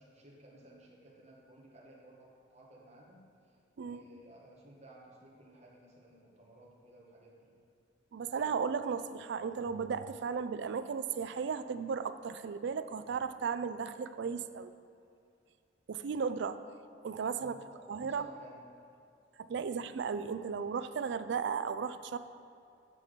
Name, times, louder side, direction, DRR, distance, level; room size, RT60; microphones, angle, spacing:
voice 1, 0.0-3.2 3.8-7.5 17.4-18.6 19.6-19.9, right 1 dB, 40° right, -3 dB, 1.5 m, -56 dB
voice 2, 8.1-14.8 15.9-16.6 17.0-17.6 17.9-18.3 19.5-22.2, right 6 dB, 65° right, 12 dB, 0.4 m, -35 dB
8.2 x 6.0 x 5.2 m, 2.5 s
head